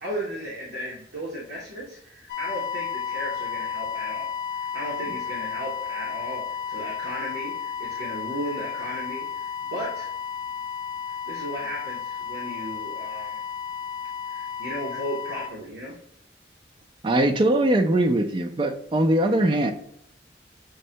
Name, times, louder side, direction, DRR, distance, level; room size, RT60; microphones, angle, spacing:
voice 1, 0.0-10.1 11.1-13.4 14.2-16.0, equal, 80° right, -4 dB, 0.8 m, -35 dB
sound 1, 2.3-15.5, left 7 dB, 55° left, 0.4 m, -33 dB
voice 2, 17.0-19.7, right 1 dB, 30° right, 6 dB, 0.3 m, -21 dB
6.3 x 2.1 x 2.7 m, 0.73 s
head